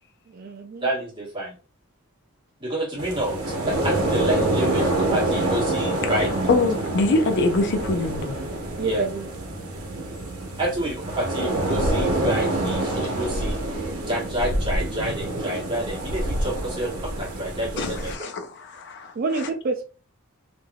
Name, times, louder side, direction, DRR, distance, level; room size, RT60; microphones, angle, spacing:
voice 1, 0.3-0.9 8.8-9.3 19.2-19.8, right 4 dB, 45° right, 0.4 m, -27 dB
voice 2, 0.8-1.5 2.6-6.3 8.8-9.0 10.6-18.1, right 1 dB, 20° right, 1.2 m, -29 dB
sound 1, 3.0-18.2, right 2 dB, 80° right, 0.7 m, -26 dB
voice 3, 6.5-8.4 17.8-19.1, left 2 dB, 55° left, 0.5 m, -24 dB
3.3 x 2.5 x 2.3 m
head